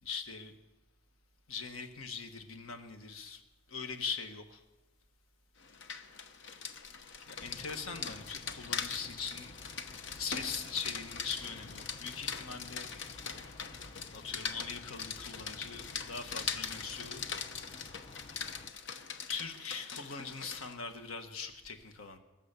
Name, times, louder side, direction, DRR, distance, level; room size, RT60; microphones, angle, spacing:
voice 1, 0.0-0.5 1.5-3.4 3.7-4.6 7.2-9.5 10.2-12.9 14.1-17.4 19.3-22.2, left 5 dB, 85° left, 7 dB, 1.4 m, -41 dB
Rain, 5.6-20.7, left 6 dB, 60° left, 0.9 m, -42 dB
sound 1, 7.4-18.7, left 2 dB, 25° left, 0.5 m, -53 dB
22.5 x 7.4 x 6.8 m, 1.1 s
head